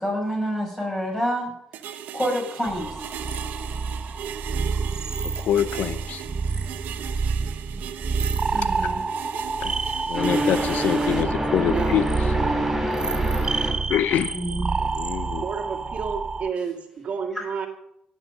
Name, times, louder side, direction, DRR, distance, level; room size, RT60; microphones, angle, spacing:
voice 1, 0.0-1.5 2.1-3.1 8.5-9.0 14.3-14.8 17.3-17.5, equal, 15° left, 0 dB, 5.6 m, -27 dB
sound 1, 1.7-11.2, right 9 dB, 90° right, 0.9 m, -37 dB
sound 2, 2.7-16.5, right 4 dB, 25° right, 0.4 m, -28 dB
voice 2, 5.2-6.2 9.6-9.8 10.0-12.1 13.9-14.4 14.8-15.4, left 9 dB, 80° left, 13 dB, 0.7 m, -25 dB
sound 3, 10.1-13.7, right 1 dB, 5° right, 4.3 m, -26 dB
voice 3, 11.7-12.0 15.4-17.7, right 6 dB, 50° right, 4 dB, 2.0 m, -30 dB
17.5 x 7.3 x 5.5 m, 0.78 s
cardioid pair, 110°, 3 cm